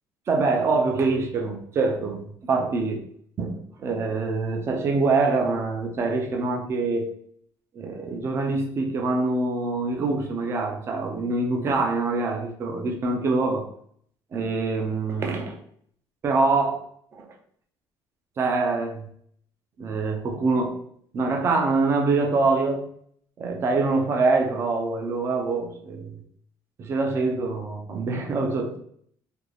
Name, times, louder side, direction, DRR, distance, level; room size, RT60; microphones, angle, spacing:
voice 1, 0.3-3.0 3.4-7.2 7.8-13.6 14.3-15.6 16.2-16.8 17.1-17.3 18.4-19.0 19.8-20.8 21.1-22.8 23.4-26.2 26.8-28.8, right 3 dB, 30° right, 3 dB, 0.4 m, -25 dB
2.5 x 2.2 x 3.2 m, 0.63 s
cardioid pair, 170°, 9 cm